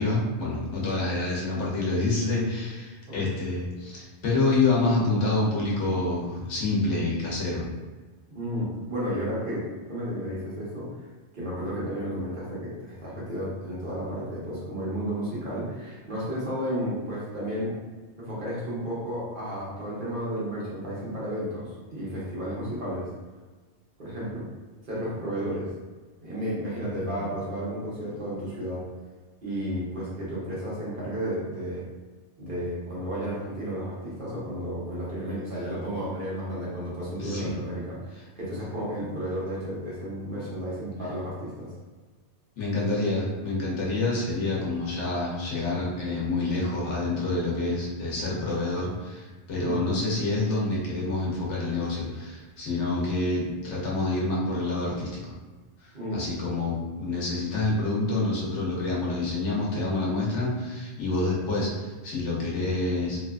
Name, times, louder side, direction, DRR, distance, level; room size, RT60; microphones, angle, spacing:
voice 1, 0.0-7.6 37.2-37.5 42.6-55.3 55.8-63.2, left 2 dB, 85° left, -5 dB, 1.1 m, -27 dB
voice 2, 8.3-10.9 11.3-17.7 18.2-23.1 24.0-24.4 24.8-25.7 26.2-28.8 29.4-31.8 32.4-41.7 49.6-50.0 55.9-56.3, equal, 50° right, -8 dB, 1.1 m, -32 dB
2.9 x 2.4 x 2.3 m, 1.3 s
omnidirectional pair, 1.2 m